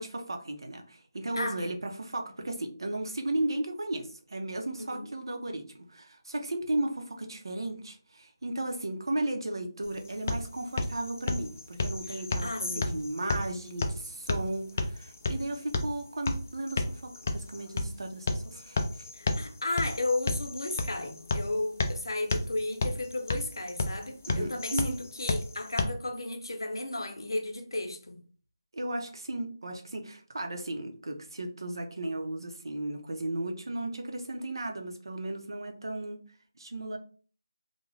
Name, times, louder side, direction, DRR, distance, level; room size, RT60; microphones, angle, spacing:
voice 1, 0.0-19.0 24.3-25.0 28.7-36.2 36.6-37.0, right 1 dB, 70° right, 0.7 m, -35 dB
voice 2, 1.3-1.7 4.8-5.1 12.1-13.1 19.1-28.2, left 2 dB, 75° left, 0.8 m, -34 dB
sound 1, 9.8-25.8, left 2 dB, 30° left, 0.3 m, -33 dB
2.4 x 2.2 x 3.2 m
figure-of-eight pair, 170°, 2 cm